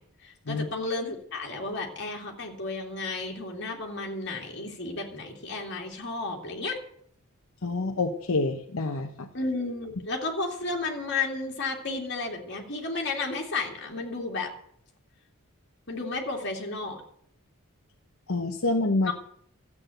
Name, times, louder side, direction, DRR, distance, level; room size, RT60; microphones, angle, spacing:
voice 1, 0.2-6.8 9.3-14.5 15.9-17.0 19.1-19.2, left 3 dB, 55° left, 0 dB, 2.7 m, -32 dB
voice 2, 7.6-9.3 18.3-19.1, left 2 dB, 75° left, 3 dB, 0.9 m, -27 dB
13.5 x 8.4 x 7.9 m, 0.66 s
head